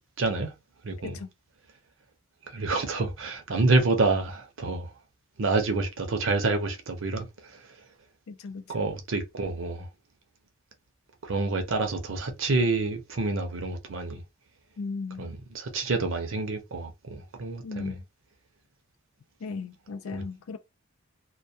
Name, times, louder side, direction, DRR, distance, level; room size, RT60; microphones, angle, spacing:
voice 1, 0.2-0.5 0.8-1.2 2.5-4.9 5.4-7.6 8.7-9.9 11.2-14.2 15.2-17.9 20.1-20.2, right 3 dB, 65° right, 0.6 m, -28 dB
voice 2, 8.3-8.7 14.8-15.3 17.6-18.0 19.4-20.6, left 4 dB, 80° left, 0.4 m, -36 dB
2.2 x 2.2 x 2.7 m
head